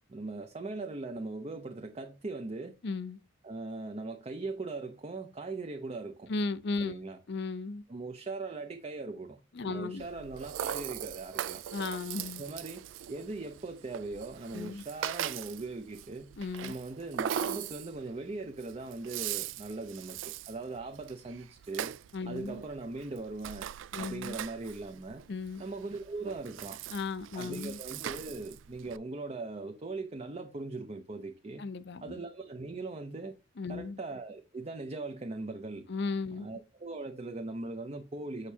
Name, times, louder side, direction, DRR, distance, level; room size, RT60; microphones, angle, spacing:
voice 1, 0.0-2.8 3.4-6.3 6.8-7.2 7.9-11.6 12.4-16.3 16.6-22.0 22.3-23.7 24.0-25.2 25.6-26.8 27.3-31.7 32.0-33.4 33.7-35.9 36.4-38.5, right 3 dB, 35° right, 0.6 m, -40 dB
voice 2, 2.8-3.2 6.3-7.0 7.3-7.8 9.5-10.0 11.7-12.4 14.5-14.8 16.4-16.7 22.1-22.6 23.9-24.3 25.3-25.6 26.9-27.8 31.6-32.2 33.6-34.0 35.9-36.5, left 3 dB, 65° left, 0.6 m, -35 dB
Rattle (instrument), 10.0-29.0, right 10 dB, 85° right, 0.3 m, -41 dB
6.5 x 5.5 x 2.7 m
head